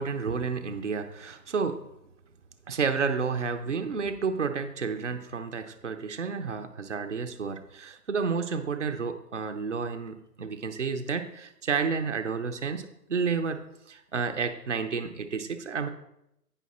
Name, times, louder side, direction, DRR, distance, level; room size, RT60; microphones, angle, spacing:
voice 1, 0.0-1.8 2.7-13.6 13.9-15.9, right 5 dB, 50° right, 8 dB, 0.6 m, -31 dB
9.3 x 5.7 x 4.1 m, 0.81 s
hypercardioid pair, 180°, 49 cm